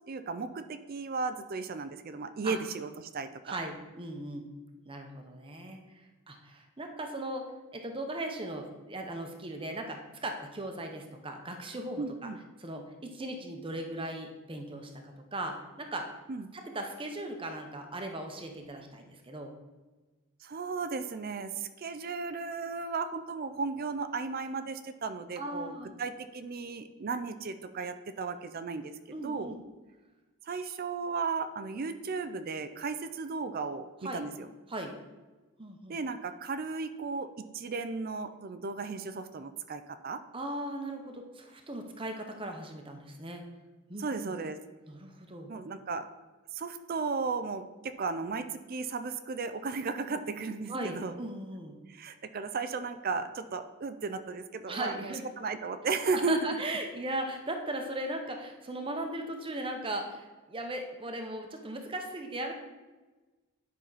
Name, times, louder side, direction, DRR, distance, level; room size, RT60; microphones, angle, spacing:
voice 1, 0.1-3.6 12.0-12.4 16.3-16.5 20.4-28.9 29.2-29.6 30.4-34.5 35.9-37.3 37.5-40.2 44.0-44.6 45.5-46.0 46.5-51.2 51.9-56.4, right 4 dB, 45° right, 10 dB, 0.4 m, -35 dB
voice 2, 3.5-4.5 4.8-7.4 7.7-12.0 12.6-16.1 16.5-19.5 25.4-25.9 29.1-29.5 34.0-34.2 34.7-35.0 35.6-36.0 40.3-43.4 43.9-44.4 44.9-45.5 50.7-51.8 54.7-55.3 56.1-62.5, right 1 dB, 25° right, 4 dB, 0.9 m, -38 dB
10.0 x 5.8 x 4.0 m, 1.2 s
head